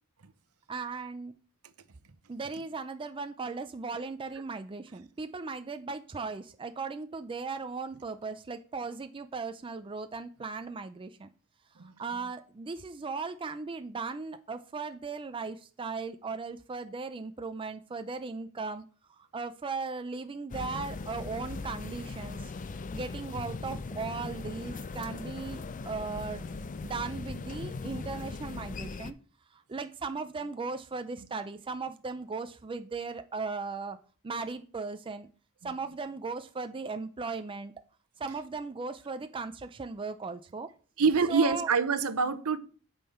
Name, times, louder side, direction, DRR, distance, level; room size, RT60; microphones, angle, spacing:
voice 1, 0.7-1.3 2.3-11.3 11.8-22.5 22.9-29.2 29.5-34.0 34.2-35.3 35.6-37.7 38.2-40.7 41.3-41.7, right 4 dB, 25° right, 0.4 m, -37 dB
sound 1, 20.5-29.1, left 3 dB, 35° left, 0.4 m, -39 dB
voice 2, 41.0-42.6, right 5 dB, 70° right, 0.8 m, -25 dB
8.9 x 5.5 x 4.3 m
head